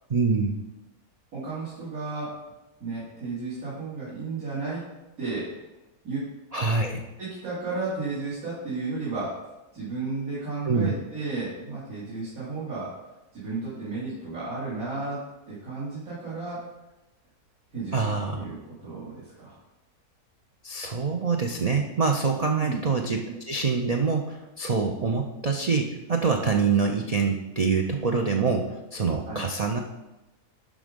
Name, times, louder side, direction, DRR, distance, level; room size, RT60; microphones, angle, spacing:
voice 1, 0.1-0.6 6.5-7.0 10.7-11.0 17.9-18.4 20.6-29.8, right 4 dB, 90° right, 2 dB, 0.3 m, -25 dB
voice 2, 1.3-2.3 2.8-4.8 5.2-5.5 6.0-6.2 7.2-9.3 9.7-12.9 13.3-15.2 15.5-16.6 17.7-18.0 18.3-19.5 22.5-22.8 29.2-29.4, right 3 dB, 65° right, -12 dB, 3.1 m, -33 dB
11.5 x 3.8 x 5.2 m, 0.99 s
omnidirectional pair, 1.6 m